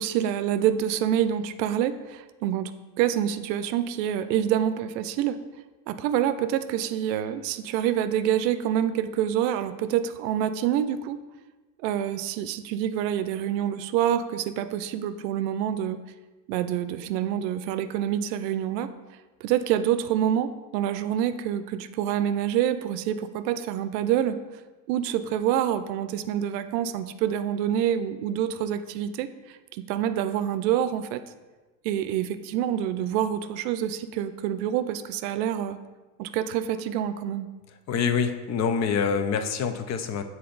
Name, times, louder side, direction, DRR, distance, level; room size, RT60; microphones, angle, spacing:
voice 1, 0.0-2.7 3.0-5.4 5.9-11.2 11.8-16.0 16.5-18.9 19.4-24.4 24.9-31.2 31.8-35.8 36.2-37.5, right 10 dB, 85° right, 11 dB, 0.5 m, -27 dB
voice 2, 37.9-40.2, left 6 dB, 35° left, 9 dB, 0.5 m, -26 dB
6.7 x 4.1 x 3.9 m, 1.2 s
supercardioid pair, 110°, 48 cm